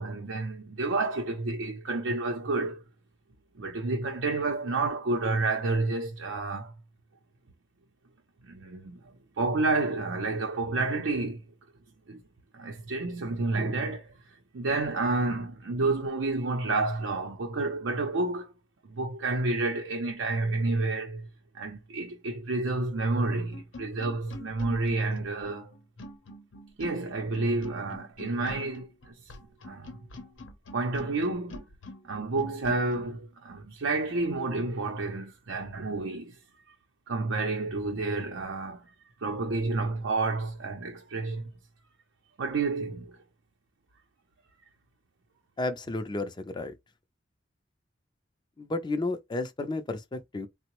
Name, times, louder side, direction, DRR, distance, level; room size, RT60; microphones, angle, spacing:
voice 1, 0.0-2.8 3.6-6.7 8.4-9.0 9.4-11.4 12.1-12.2 12.5-18.5 18.9-21.3 21.5-25.7 26.8-29.3 29.6-29.9 30.7-31.6 32.0-36.3 37.1-38.9 39.2-41.5 42.4-43.2, right 3 dB, 85° right, 0.6 m, -30 dB
sound 1, 23.5-33.1, left 1 dB, 85° left, 0.7 m, -46 dB
voice 2, 45.6-46.7 48.6-50.5, left 2 dB, 25° left, 0.4 m, -32 dB
3.7 x 2.0 x 2.9 m
head